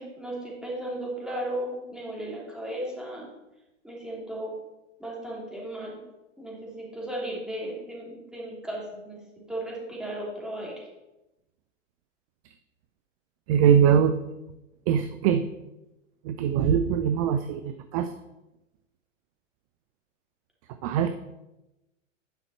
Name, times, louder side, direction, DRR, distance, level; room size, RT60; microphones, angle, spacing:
voice 1, 0.0-3.3 3.8-4.5 5.0-6.0 6.4-10.9, right 1 dB, ahead, -4 dB, 3.0 m, -35 dB
voice 2, 13.5-14.2 14.9-15.5 16.2-18.1 20.8-21.1, right 8 dB, 30° right, 9 dB, 0.4 m, -22 dB
10.5 x 5.7 x 4.3 m, 0.97 s
hypercardioid pair, 120°, 38 cm